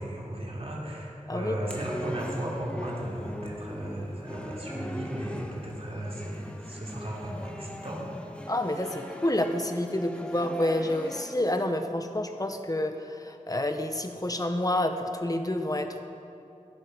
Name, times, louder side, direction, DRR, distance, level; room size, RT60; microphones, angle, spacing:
voice 1, 0.0-8.0 9.0-9.1, right 1 dB, 45° right, -4 dB, 3.7 m, -36 dB
sound 1, 1.7-11.3, equal, 10° left, 1.5 m, -40 dB
voice 2, 8.5-16.0, left 1 dB, 25° left, 6 dB, 1.3 m, -29 dB
16.5 x 12.0 x 5.3 m, 2.8 s
wide cardioid pair, 45°, 14 cm